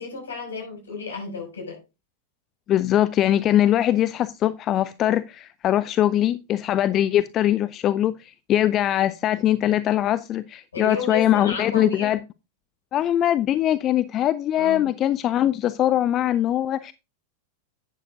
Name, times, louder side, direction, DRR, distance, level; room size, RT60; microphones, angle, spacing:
voice 1, 0.0-1.8 10.7-12.1 14.6-14.9, left 4 dB, 70° left, 6.3 m, -32 dB
voice 2, 2.7-12.2 12.9-16.9, left 12 dB, 30° left, 0.4 m, -22 dB
11.0 x 9.8 x 2.6 m
figure-of-eight pair, 90°, 0 cm